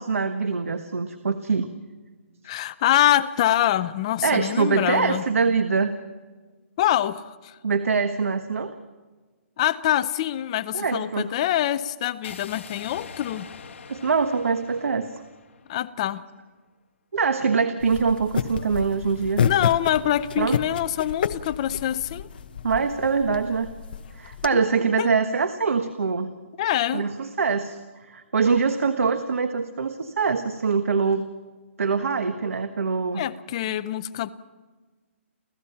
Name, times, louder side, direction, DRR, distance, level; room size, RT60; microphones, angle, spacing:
voice 1, 0.0-1.7 4.2-5.9 7.6-8.7 10.7-11.3 13.9-15.1 17.1-19.4 20.4-20.6 22.6-23.7 24.1-26.3 26.9-31.2 31.8-33.2, right 5 dB, 90° right, 9 dB, 1.4 m, -24 dB
voice 2, 2.4-5.2 6.8-7.5 9.6-13.5 15.7-16.2 19.4-22.3 24.5-24.6 25.0-25.1 26.6-27.1 33.1-34.3, left 12 dB, 25° left, 13 dB, 0.6 m, -25 dB
sound 1, 12.2-16.3, left 6 dB, 60° left, 1.7 m, -44 dB
sound 2, 17.8-24.5, left 7 dB, 40° left, 1.0 m, -30 dB
29.0 x 15.5 x 5.8 m, 1.4 s
hypercardioid pair, 170°, 7 cm